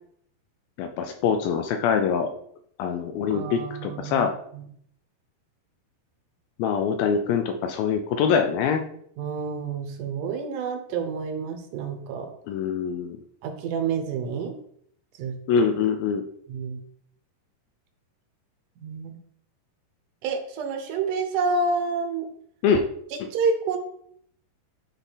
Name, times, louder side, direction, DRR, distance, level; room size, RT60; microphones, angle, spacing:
voice 1, 0.8-2.3 2.8-4.3 6.6-8.8 12.5-13.2 15.5-16.2 22.6-22.8 23.2-23.3, left 6 dB, 80° left, 6 dB, 2.2 m, -24 dB
voice 2, 3.3-4.6 9.2-12.3 13.4-14.5 15.2-15.4 16.5-16.8 18.8-19.2 20.2-22.3 23.3-23.8, right 4 dB, 70° right, 4 dB, 2.1 m, -28 dB
9.9 x 3.7 x 4.0 m, 0.66 s
omnidirectional pair, 4.6 m